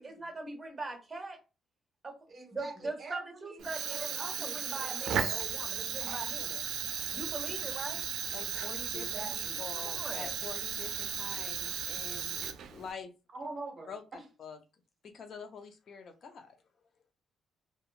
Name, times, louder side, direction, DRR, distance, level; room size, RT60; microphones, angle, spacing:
voice 1, 0.0-1.4 2.0-2.1 2.5-6.6 7.1-8.0 9.7-10.3, right 3 dB, 20° right, 1.2 m, -41 dB
voice 2, 2.3-5.4 7.1-7.7 8.9-9.6 13.3-14.2, right 3 dB, 45° right, 0.8 m, -46 dB
Fire, 3.6-12.9, right 8 dB, 75° right, 0.4 m, -36 dB
voice 3, 8.3-13.1 13.9-14.0 14.4-14.6 15.0-16.5, left 5 dB, 55° left, 0.4 m, -46 dB
2.8 x 2.3 x 2.4 m
cardioid pair, 90°, 0 cm